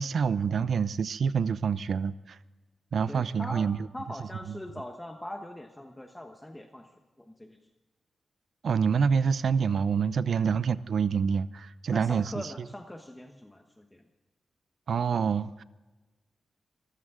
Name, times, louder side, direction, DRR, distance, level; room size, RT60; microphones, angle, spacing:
voice 1, 0.0-2.4 2.9-3.8 4.5-4.6 8.6-12.5 14.9-15.6, right 6 dB, 60° right, 15 dB, 0.6 m, -27 dB
voice 2, 3.1-6.9 7.2-7.6 10.3-10.4 11.9-14.0, left 1 dB, 10° left, 4 dB, 1.1 m, -42 dB
25.5 x 15.0 x 3.7 m, 1.2 s
wide cardioid pair, 155°, 0 cm